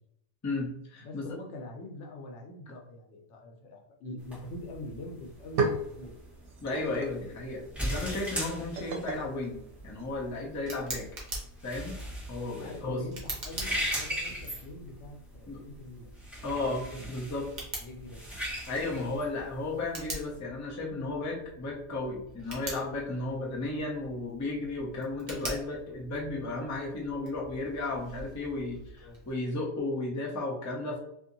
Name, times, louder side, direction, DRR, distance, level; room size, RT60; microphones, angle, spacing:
voice 1, 0.4-1.2 6.6-11.1 11.6-12.0 12.3-13.0 15.5-15.6 16.4-17.5 18.7-31.0, left 2 dB, 30° left, -1 dB, 0.3 m, -34 dB
voice 2, 1.0-6.1 12.5-17.4 17.8-18.2 23.3-23.5 29.0-29.2, left 2 dB, 90° left, 1 dB, 0.9 m, -44 dB
sound 1, 4.2-20.4, equal, ahead, 0.9 m, -39 dB
sound 2, 4.9-5.0 5.2-10.4, right 3 dB, 80° right, 0.9 m, -36 dB
Tick, 9.7-29.3, right 2 dB, 45° right, 0.8 m, -45 dB
2.6 x 2.5 x 2.5 m, 0.78 s
omnidirectional pair, 1.2 m